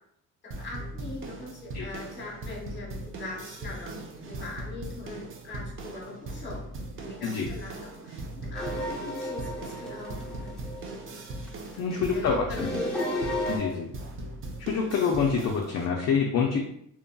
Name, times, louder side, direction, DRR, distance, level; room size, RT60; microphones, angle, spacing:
sound 1, 0.5-15.9, right 2 dB, 35° right, 0.5 m, -39 dB
voice 1, 0.6-6.6 6.9-10.6 11.8-12.9, left 2 dB, 30° left, -3 dB, 1.1 m, -41 dB
sound 2, 8.5-11.9 12.5-13.6, left 1 dB, ahead, 0.9 m, -33 dB
voice 2, 11.8-12.7 13.5-13.9 14.6-16.6, left 6 dB, 50° left, 0 dB, 0.5 m, -26 dB
2.8 x 2.5 x 2.2 m, 0.75 s
cardioid pair, 105°, 34 cm